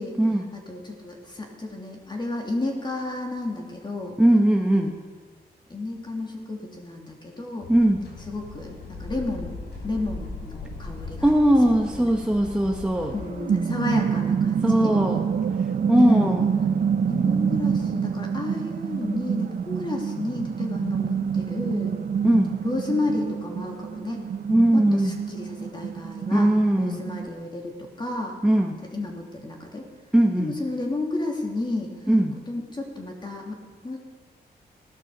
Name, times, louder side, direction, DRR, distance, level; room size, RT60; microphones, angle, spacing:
voice 1, 0.5-4.1 5.7-7.7 8.3-11.3 11.6-12.1 13.1-15.0 16.0-16.3 17.1-21.9 22.6-24.3 24.7-26.5 26.7-28.4 28.8-29.9 30.4-31.9 32.5-34.0, left 2 dB, 25° left, 0 dB, 2.9 m, -32 dB
voice 2, 4.2-4.9 7.7-8.0 11.2-13.1 14.6-15.2 15.9-16.5 22.2-22.6 24.5-25.1 26.3-27.0 28.4-28.8 30.1-30.5 32.1-32.4, right 1 dB, 5° right, 1 dB, 1.2 m, -20 dB
sound 1, 7.6-13.3, left 3 dB, 75° left, 4.2 m, -38 dB
sound 2, 13.0-27.3, right 7 dB, 60° right, 0.8 m, -27 dB
16.0 x 12.0 x 6.7 m, 1.5 s
cardioid pair, 85°, 17 cm